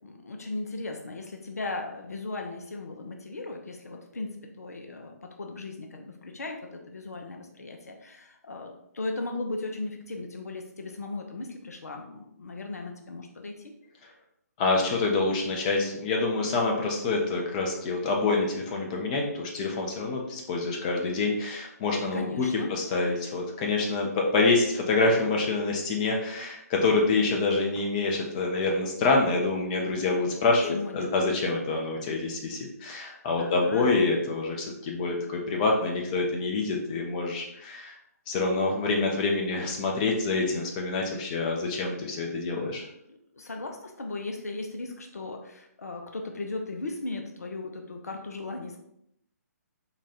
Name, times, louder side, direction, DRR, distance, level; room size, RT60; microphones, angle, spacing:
voice 1, 0.0-13.7 22.1-22.7 30.6-31.1 33.4-34.0 43.1-48.8, left 2 dB, 65° left, 3 dB, 0.7 m, -37 dB
voice 2, 14.6-38.0 38.3-42.8, left 3 dB, 25° left, 0 dB, 0.7 m, -26 dB
4.1 x 2.4 x 4.1 m, 0.75 s
figure-of-eight pair, 135°, 9 cm